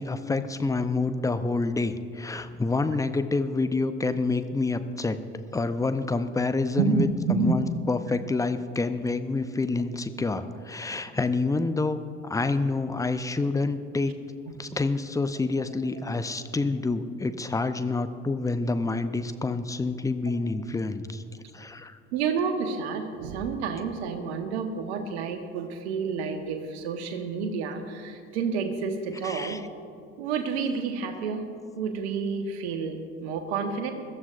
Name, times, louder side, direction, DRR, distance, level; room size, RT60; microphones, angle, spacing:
voice 1, 0.0-5.2 5.5-14.1 14.6-22.0 29.2-29.6, left 3 dB, 10° left, 10 dB, 0.7 m, -28 dB
voice 2, 6.8-7.5 22.1-29.6 30.2-31.5 31.8-33.9, right 5 dB, 65° right, 6 dB, 1.4 m, -29 dB
21.5 x 13.5 x 2.6 m, 2.4 s
figure-of-eight pair, 55°, 35 cm